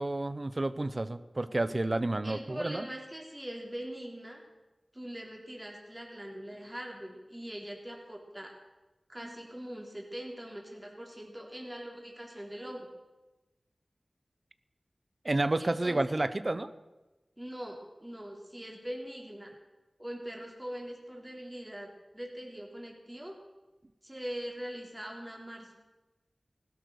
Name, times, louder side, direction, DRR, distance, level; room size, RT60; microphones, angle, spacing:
voice 1, 0.0-2.9 15.2-16.7, right 2 dB, 45° right, 13 dB, 0.9 m, -30 dB
voice 2, 2.2-4.4 4.9-8.5 9.1-12.9 15.6-16.2 17.4-19.5 20.0-21.9 22.1-23.3 24.0-25.7, equal, 15° right, 0 dB, 3.7 m, -42 dB
16.5 x 12.0 x 6.6 m, 1.1 s
wide cardioid pair, 45°, 0 cm